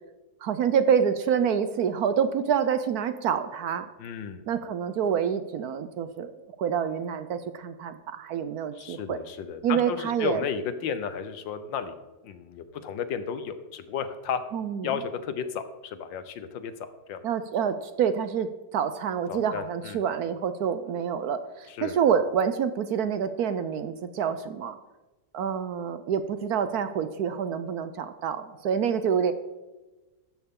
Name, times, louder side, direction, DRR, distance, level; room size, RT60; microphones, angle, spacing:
voice 1, 0.4-3.9 4.5-6.3 6.6-9.2 9.6-10.4 14.5-14.9 17.2-24.8 25.3-29.3, right 7 dB, 65° right, 11 dB, 1.0 m, -27 dB
voice 2, 4.0-4.4 8.7-12.0 12.2-14.4 14.8-17.3 19.3-20.0 21.7-22.0, left 7 dB, 80° left, 11 dB, 1.6 m, -33 dB
14.0 x 10.5 x 3.7 m, 1.1 s
omnidirectional pair, 2.0 m